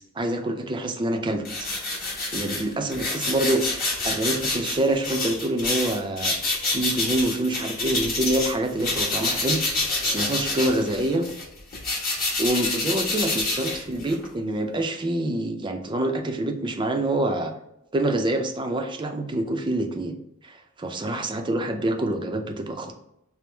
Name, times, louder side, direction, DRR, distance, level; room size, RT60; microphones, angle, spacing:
voice 1, 0.0-1.7 2.3-6.3 6.7-9.6 10.0-11.3 12.4-17.5 17.9-20.1 20.4-22.9, right 1 dB, 20° right, 5 dB, 0.5 m, -26 dB
sound 1, 1.4-8.5 8.8-14.3, left 2 dB, 40° left, 1.2 m, -27 dB
5.9 x 2.0 x 3.3 m, 0.83 s
head